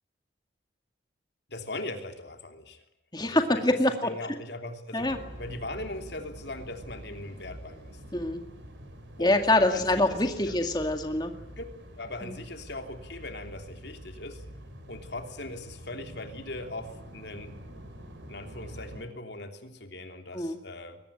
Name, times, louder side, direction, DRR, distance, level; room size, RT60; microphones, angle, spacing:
voice 1, 1.5-2.8 3.2-3.6 4.0-8.0 9.2-9.3 9.7-10.5 11.6-11.7 12.0-14.4 14.9-17.6 18.3-21.0, left 2 dB, 65° left, 5 dB, 3.2 m, -40 dB
voice 2, 3.1-4.1 4.9-5.2 8.1-8.4 9.2-11.3 12.2-12.4 20.3-20.6, left 1 dB, 20° left, 5 dB, 2.1 m, -25 dB
sound 1, 5.0-19.0, right 1 dB, 85° right, 5.3 m, -46 dB
22.5 x 18.5 x 9.9 m, 0.80 s
head